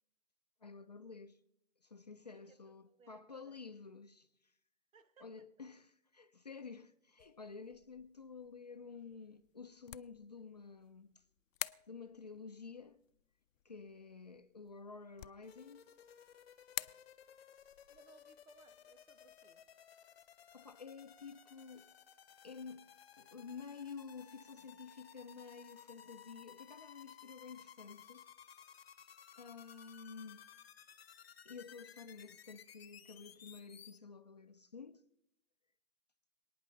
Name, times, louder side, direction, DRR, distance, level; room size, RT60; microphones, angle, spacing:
voice 1, 0.6-1.4 1.8-4.5 5.2-11.1 11.9-13.0 13.6-15.9 20.5-21.9 22.4-22.9 23.2-28.2 29.4-30.4 31.4-35.0, left 5 dB, 35° left, 0.4 m, -51 dB
voice 2, 2.3-3.6 4.9-5.5 17.9-19.6, right 5 dB, 85° right, 1.5 m, -65 dB
sound 1, 7.2-21.3, left 10 dB, 80° left, 0.6 m, -52 dB
sound 2, 15.4-34.0, left 8 dB, 50° left, 0.8 m, -58 dB
27.0 x 9.4 x 3.9 m
hypercardioid pair, 165°, 39 cm